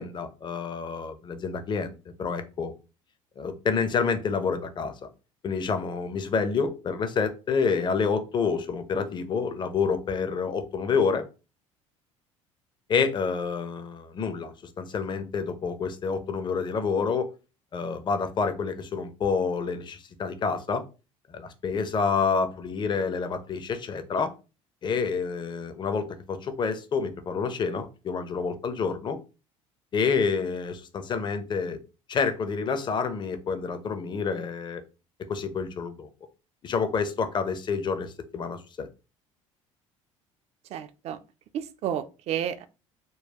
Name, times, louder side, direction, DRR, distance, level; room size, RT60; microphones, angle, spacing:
voice 1, 0.0-2.7 3.4-5.1 5.4-11.2 12.9-17.3 17.7-20.8 21.3-24.3 24.8-29.2 29.9-31.8 32.1-34.8 35.3-36.1 36.6-38.9, left 5 dB, 30° left, 0.5 m, -28 dB
voice 2, 40.7-41.2 41.5-42.7, right 10 dB, 40° right, 0.4 m, -31 dB
3.8 x 2.2 x 2.8 m
figure-of-eight pair, 60°, 17 cm